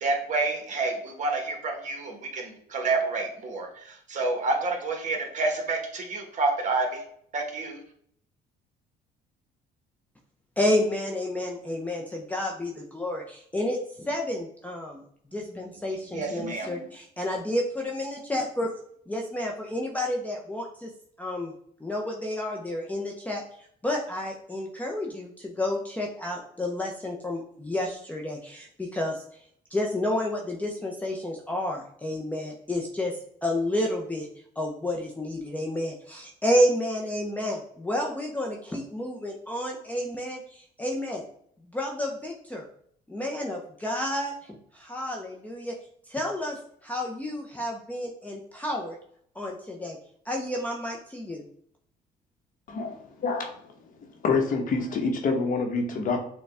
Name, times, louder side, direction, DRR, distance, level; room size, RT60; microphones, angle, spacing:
voice 1, 0.0-7.0 7.3-7.8 16.1-16.8, right 3 dB, 45° right, 1 dB, 1.3 m, -29 dB
voice 2, 10.6-15.0 15.3-18.7 19.1-20.9 21.2-21.5 21.8-23.4 23.8-29.2 29.7-33.1 33.4-34.3 34.6-41.2 41.7-42.6 43.1-44.3 44.7-45.7 46.1-46.6 46.8-49.0 49.4-50.0 50.3-51.4, left 1 dB, 10° left, -1 dB, 0.6 m, -30 dB
voice 3, 52.7-53.6 54.2-56.2, left 4 dB, 50° left, 4 dB, 1.0 m, -27 dB
6.7 x 2.3 x 3.4 m, 0.65 s
cardioid pair, 110°, 17 cm